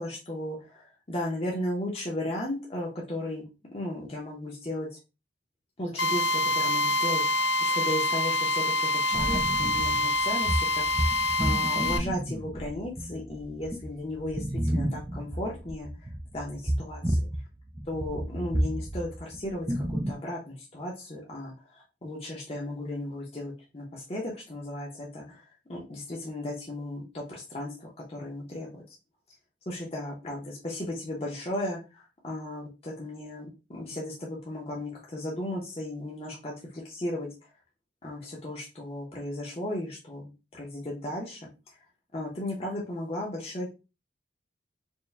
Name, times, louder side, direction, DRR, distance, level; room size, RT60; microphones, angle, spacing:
voice 1, 0.0-3.4 3.7-4.9 5.8-17.3 17.9-28.8 29.7-37.3 38.0-41.5 42.1-43.7, left 1 dB, 35° left, -2 dB, 0.7 m, -35 dB
Drill, 6.0-12.0, left 1 dB, 85° left, 0.5 m, -26 dB
sound 1, 9.1-17.4 17.7-20.1, right 1 dB, 15° right, 0.3 m, -31 dB
4.4 x 2.2 x 3.3 m, 0.29 s
head